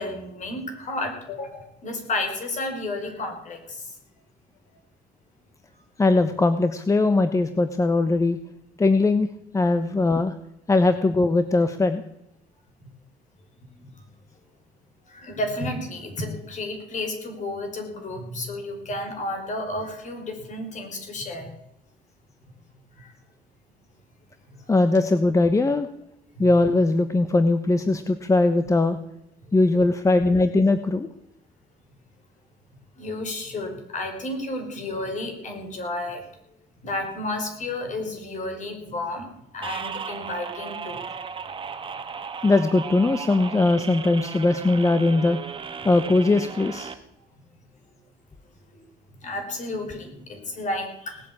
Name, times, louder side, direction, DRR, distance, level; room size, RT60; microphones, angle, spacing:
voice 1, 0.0-3.8 13.8-13.9 15.1-21.5 23.0-23.1 26.4-26.5 33.0-36.2 36.8-39.3 39.5-41.0 48.8-48.9 49.2-51.3, left 2 dB, 45° left, 4 dB, 5.2 m, -32 dB
voice 2, 6.0-8.4 8.8-9.3 9.5-10.3 10.7-12.0 24.7-25.9 26.4-29.0 29.5-31.1 42.4-45.4 45.8-46.9, left 2 dB, 20° left, 10 dB, 1.0 m, -20 dB
sound 1, 39.6-46.9, right 6 dB, 30° right, 1.7 m, -36 dB
18.5 x 8.4 x 8.5 m, 0.81 s
cardioid pair, 110°, 17 cm